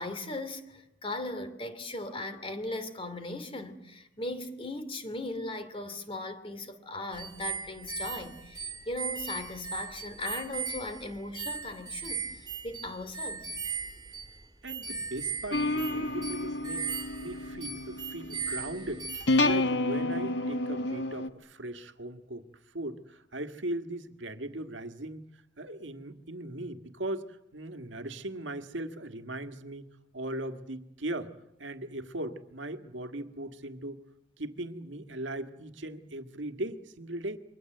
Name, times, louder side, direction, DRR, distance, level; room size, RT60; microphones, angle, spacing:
voice 1, 0.0-13.5, left 2 dB, 30° left, 2.8 m, -38 dB
sound 1, 7.1-19.6, right 5 dB, 20° right, 3.0 m, -38 dB
voice 2, 14.6-19.1 19.4-22.5 22.7-25.3 25.6-29.9 30.1-31.3 31.6-34.0 34.4-37.4, right 1 dB, 80° right, 1.8 m, -38 dB
sound 2, 15.5-21.3, left 2 dB, 70° left, 1.4 m, -30 dB
28.0 x 23.5 x 7.9 m
head